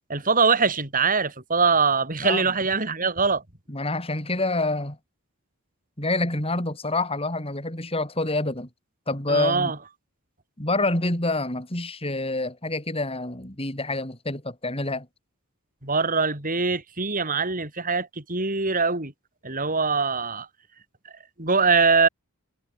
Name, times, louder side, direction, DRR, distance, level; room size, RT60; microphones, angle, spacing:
voice 1, 0.1-3.4 9.3-9.7 15.8-19.1 19.4-20.5 21.4-22.1, right 4 dB, 40° right, 5.3 m, -23 dB
voice 2, 3.7-5.0 6.0-8.7 9.1-9.7 10.6-15.1, left 2 dB, 25° left, 5.3 m, -27 dB
head